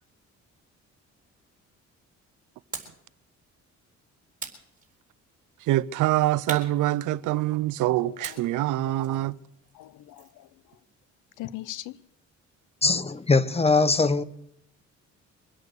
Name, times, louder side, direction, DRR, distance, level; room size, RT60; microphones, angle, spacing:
sound 1, 2.7-3.1 4.4-5.3 6.5-7.6 8.2-10.4, right 5 dB, 25° right, 4.1 m, -41 dB
voice 1, 5.6-9.4, right 15 dB, 80° right, 0.6 m, -25 dB
voice 2, 8.0-8.7 9.7-10.5 11.4-12.0, left 15 dB, 90° left, 0.7 m, -40 dB
voice 3, 12.8-14.2, left 3 dB, 20° left, 1.0 m, -21 dB
24.5 x 8.4 x 6.7 m
cardioid pair, 90°, 30 cm